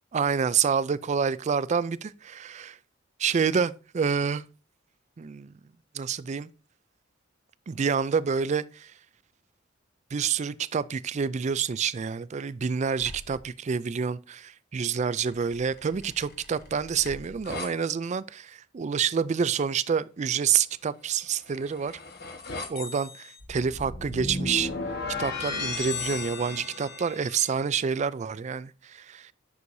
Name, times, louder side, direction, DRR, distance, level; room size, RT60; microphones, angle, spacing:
voice 1, 0.1-2.8 3.2-4.4 5.2-5.5 5.9-6.5 7.7-8.9 10.1-21.9 22.7-24.7 25.2-29.3, right 6 dB, 35° right, 0.3 m, -28 dB
sound 1, 13.0-13.4 15.3-17.7 21.2-27.6, left 3 dB, 55° left, 1.4 m, -36 dB
9.6 x 6.3 x 2.6 m
head